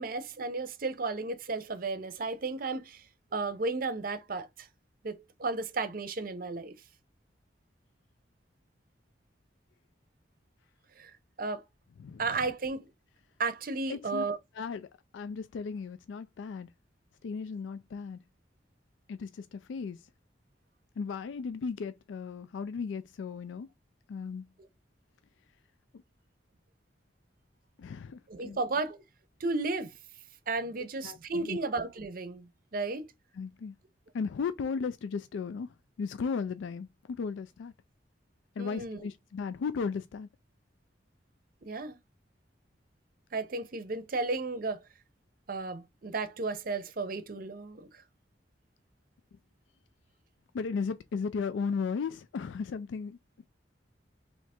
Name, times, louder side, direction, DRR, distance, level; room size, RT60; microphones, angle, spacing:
voice 1, 0.0-3.0 3.3-4.7 5.0-6.8 11.0-11.1 11.4-11.6 12.2-12.9 13.4-14.4 28.3-29.0 29.4-29.9 30.5-33.0 38.6-39.0 41.6-42.0 43.3-44.8 45.5-47.9, right 3 dB, 50° right, 0.6 m, -34 dB
voice 2, 13.9-14.2 14.6-14.9 15.1-16.7 17.2-18.2 19.1-20.0 21.0-23.7 24.1-24.4 27.8-28.6 31.0-31.6 33.4-33.7 34.1-35.7 36.0-36.9 37.2-37.7 38.6-40.3 50.5-53.2, left 5 dB, 85° left, 0.3 m, -35 dB
3.3 x 2.8 x 4.2 m
head